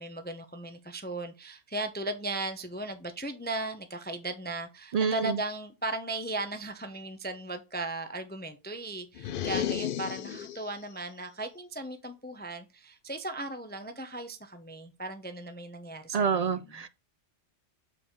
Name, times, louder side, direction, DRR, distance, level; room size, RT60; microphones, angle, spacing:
voice 1, 0.0-16.7, right 2 dB, 10° left, 0.5 m, -37 dB
voice 2, 4.9-5.4 16.1-16.9, right 6 dB, 65° right, 0.4 m, -27 dB
sound 1, 9.1-10.8, left 10 dB, 60° left, 0.6 m, -33 dB
6.9 x 4.8 x 3.6 m
omnidirectional pair, 1.2 m